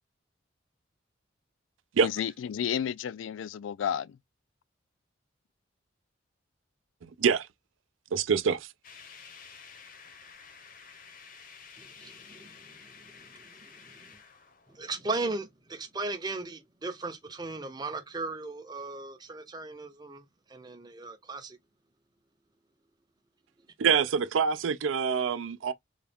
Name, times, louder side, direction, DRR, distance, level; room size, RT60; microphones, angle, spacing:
voice 1, 2.0-4.2, left 8 dB, 80° left, 0.3 m, -32 dB
voice 2, 7.0-7.5 8.1-8.7 23.8-25.7, right 6 dB, 85° right, 0.4 m, -26 dB
sound 1, 8.8-15.5, left 6 dB, 45° left, 0.7 m, -51 dB
voice 3, 11.8-14.2 14.7-21.6, right 3 dB, 20° right, 0.6 m, -37 dB
3.9 x 2.3 x 3.4 m
head